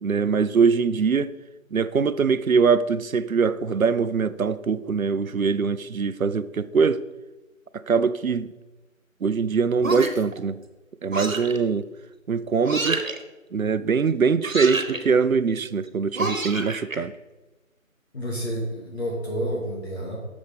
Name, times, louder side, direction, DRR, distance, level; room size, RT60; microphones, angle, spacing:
voice 1, 0.0-1.3 1.7-7.0 7.7-8.5 9.2-10.6 11.0-11.9 12.3-13.0 13.5-17.1, right 5 dB, 85° right, 0.6 m, -22 dB
sound 1, 9.8-10.3 11.1-11.6 12.6-13.2 14.4-15.0 16.2-17.0, right 2 dB, 70° right, 1.4 m, -28 dB
voice 2, 18.1-20.2, equal, 50° left, 2.2 m, -29 dB
11.5 x 7.2 x 3.4 m
figure-of-eight pair, 160°, 41 cm